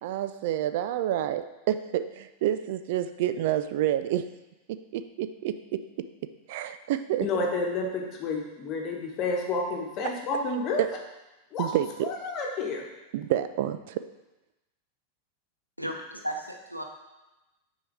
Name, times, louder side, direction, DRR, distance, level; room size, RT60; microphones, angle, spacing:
voice 1, 0.0-4.3 4.7-6.1 6.5-7.3 10.8-10.9 11.6-12.1 13.1-14.0, right 12 dB, 50° right, 11 dB, 0.3 m, -29 dB
voice 2, 7.2-10.8 11.5-11.7 12.0-12.8, left 3 dB, 35° left, 1 dB, 1.3 m, -30 dB
voice 3, 15.8-16.8, equal, 90° left, 2 dB, 0.7 m, -34 dB
6.2 x 4.5 x 4.6 m, 1.0 s
figure-of-eight pair, 90°, 0 cm